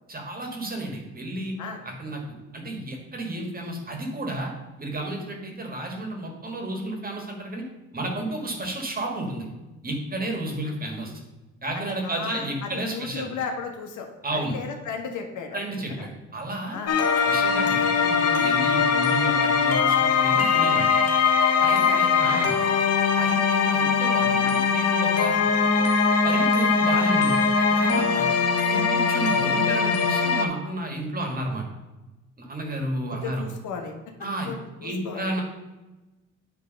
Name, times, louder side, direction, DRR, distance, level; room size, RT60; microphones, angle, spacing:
voice 1, 0.1-1.6 1.8-2.2 2.5-4.5 4.8-7.6 7.9-9.5 9.8-11.1 11.6-13.3 14.2-14.6 15.5-16.8 17.3-20.9 21.6-22.6 23.1-25.4 26.2-27.4 27.7-28.3 28.7-31.7 32.4-33.5 34.2-34.5 34.8-35.4, right 1 dB, 30° right, 2 dB, 1.8 m, -32 dB
voice 2, 11.7-15.6 16.0-16.1 16.7-16.9 21.8-22.5 33.1-33.9 34.4-35.3, left 5 dB, 75° left, 3 dB, 1.2 m, -35 dB
sound 1, 16.9-30.5, left 5 dB, 55° left, 0.8 m, -21 dB
9.1 x 3.4 x 5.2 m, 1.1 s
cardioid pair, 90°, 30 cm